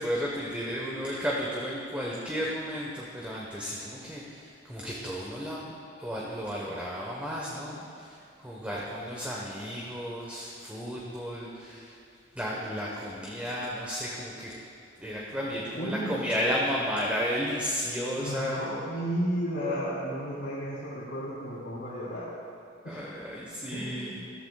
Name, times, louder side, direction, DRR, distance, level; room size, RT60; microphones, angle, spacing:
voice 1, 0.0-5.7 6.0-11.9 12.3-14.5 15.0-18.6 22.8-24.2, equal, 10° right, -5 dB, 1.3 m, -33 dB
voice 2, 15.8-16.1 18.2-22.3 22.8-23.1 23.7-24.2, equal, 75° left, -8 dB, 3.2 m, -33 dB
15.5 x 14.0 x 2.4 m, 2.5 s
head